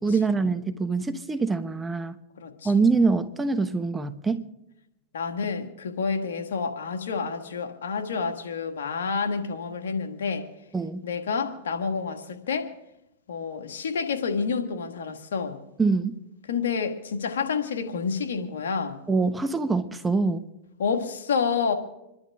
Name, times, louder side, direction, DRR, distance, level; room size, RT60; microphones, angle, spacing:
voice 1, 0.0-2.2 2.6-4.5 10.7-11.0 15.8-16.2 19.1-20.5, right 4 dB, 10° right, 1.1 m, -24 dB
voice 2, 2.4-2.7 5.1-10.5 11.0-12.7 13.3-15.6 16.5-19.0 20.8-21.7, left 5 dB, 80° left, 1.9 m, -29 dB
27.0 x 11.5 x 3.7 m
hypercardioid pair, 115°, 0 cm